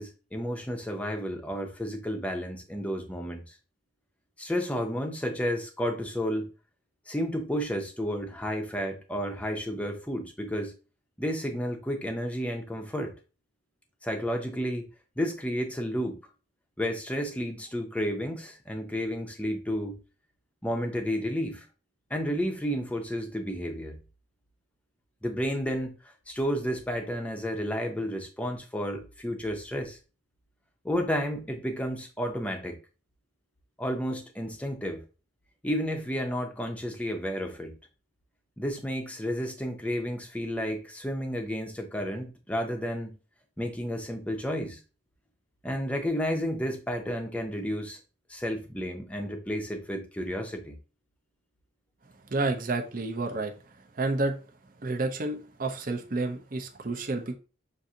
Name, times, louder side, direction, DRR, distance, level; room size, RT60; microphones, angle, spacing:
voice 1, 0.0-3.5 4.4-6.5 7.1-10.7 11.2-13.1 14.0-14.8 15.2-16.2 16.8-20.0 20.6-21.7 22.1-24.0 25.2-30.0 30.8-32.8 33.8-35.0 35.6-37.7 38.6-43.2 43.6-44.8 45.6-48.0 48.3-50.8, equal, 5° left, 0.6 m, -31 dB
voice 2, 52.3-53.5 54.0-54.4 54.8-57.3, right 2 dB, 45° right, 0.6 m, -30 dB
6.1 x 2.6 x 2.7 m
head